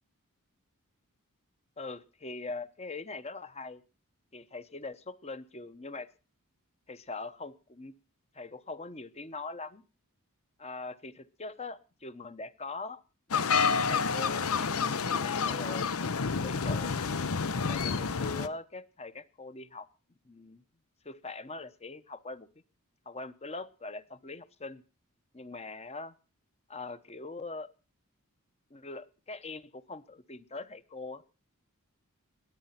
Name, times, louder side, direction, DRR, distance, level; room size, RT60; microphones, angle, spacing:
voice 1, 1.8-3.8 4.3-6.1 6.9-7.9 8.3-9.8 10.6-13.0 13.3-17.0 17.7-19.9 20.2-20.6 21.0-22.5 23.1-24.8 25.3-26.1 26.7-27.7 28.7-31.2, left 3 dB, 30° left, 12 dB, 0.9 m, -42 dB
sound 1, 13.3-18.5, left 5 dB, 75° left, 0.7 m, -29 dB
20.0 x 9.0 x 5.7 m, 0.35 s
head